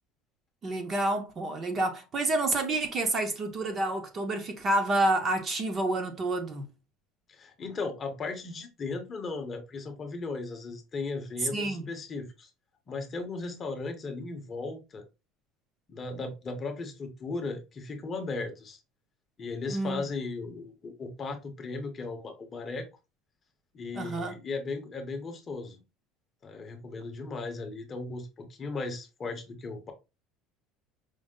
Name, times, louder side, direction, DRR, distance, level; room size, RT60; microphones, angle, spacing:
voice 1, 0.6-6.7 11.5-11.9 19.7-20.1 23.9-24.4, right 2 dB, 25° right, 0.6 m, -29 dB
voice 2, 7.3-12.5 12.9-15.0 15.9-18.8 19.4-22.9 23.7-25.8 26.4-29.9, left 3 dB, 20° left, 0.7 m, -36 dB
5.2 x 2.0 x 3.6 m
cardioid pair, 180°, 0 cm